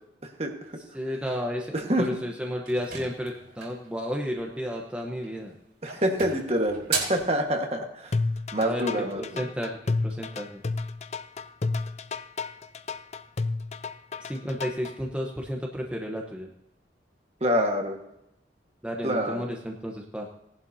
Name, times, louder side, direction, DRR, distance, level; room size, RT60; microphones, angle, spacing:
voice 1, 0.9-5.5 8.6-8.8 9.2-10.6 14.3-16.5 18.8-20.3, equal, 5° right, 0 dB, 0.9 m, -32 dB
voice 2, 1.7-2.1 5.8-8.1 8.5-9.4 17.4-18.0 19.0-19.4, equal, 35° right, 3 dB, 1.5 m, -26 dB
sound 1, 2.6-3.9 5.1-5.5 5.9-7.3, right 5 dB, 70° right, 4.0 m, -34 dB
sound 2, 8.1-14.9, left 3 dB, 35° left, 0.5 m, -30 dB
18.0 x 11.0 x 2.7 m, 0.83 s
head